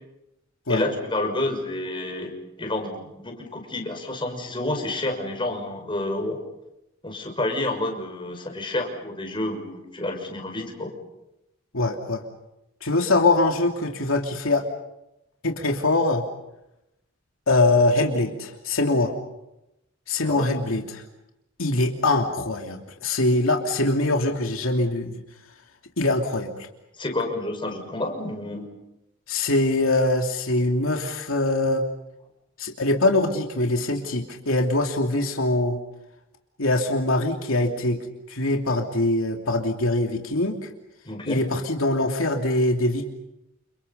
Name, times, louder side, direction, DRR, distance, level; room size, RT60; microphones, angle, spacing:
voice 1, 0.7-6.4 7.0-10.9 20.2-20.5 27.0-28.7 41.0-41.4, left 1 dB, 25° left, 3 dB, 6.0 m, -29 dB
voice 2, 11.7-12.2 12.8-14.7 15.4-16.2 17.5-19.1 20.1-21.0 21.6-25.1 26.0-26.5 29.3-31.8 32.6-35.8 36.6-40.6 41.3-43.1, left 2 dB, 80° left, 2 dB, 2.9 m, -23 dB
30.0 x 29.0 x 5.5 m, 0.89 s
head